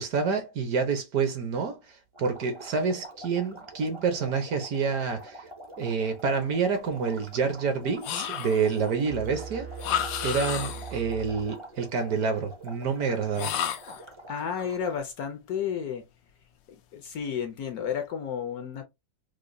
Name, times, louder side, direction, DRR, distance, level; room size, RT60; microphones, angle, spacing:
voice 1, 0.0-5.5 5.8-9.7 10.2-13.5, right 5 dB, 65° right, 1.1 m, -28 dB
sound 1, 2.1-15.0, right 1 dB, 40° right, 0.4 m, -46 dB
sound 2, 8.0-8.8 9.8-11.0 13.3-14.1, left 10 dB, 90° left, 1.3 m, -31 dB
sound 3, 9.1-12.0, right 6 dB, 85° right, 2.5 m, -41 dB
voice 2, 14.3-16.0 16.7-18.8, left 7 dB, 70° left, 0.9 m, -32 dB
4.9 x 2.1 x 2.5 m
omnidirectional pair, 1.9 m